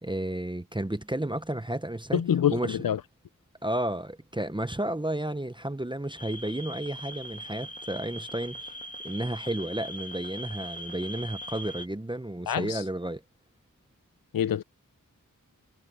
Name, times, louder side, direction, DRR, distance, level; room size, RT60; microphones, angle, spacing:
voice 1, 0.0-2.2 2.5-2.8 3.6-8.6 9.0-13.2, right 1 dB, 15° right, 0.8 m, -32 dB
voice 2, 2.1-3.0 12.5-12.8 14.3-14.6, left 9 dB, 85° left, 0.5 m, -26 dB
sound 1, 6.2-11.9, equal, 25° left, 1.6 m, -41 dB
wide cardioid pair, 45°, 34 cm